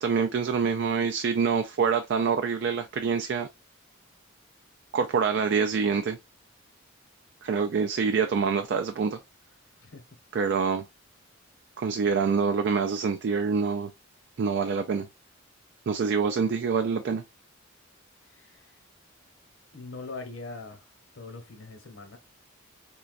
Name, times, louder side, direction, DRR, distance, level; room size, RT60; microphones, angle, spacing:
voice 1, 0.0-3.5 4.9-6.2 7.4-9.2 10.3-10.9 11.8-13.9 14.4-15.1 15.9-17.2, right 5 dB, 55° right, 0.3 m, -26 dB
voice 2, 18.3-18.8 19.7-20.9 21.1-22.2, left 3 dB, 70° left, 0.9 m, -42 dB
4.0 x 2.3 x 2.4 m
head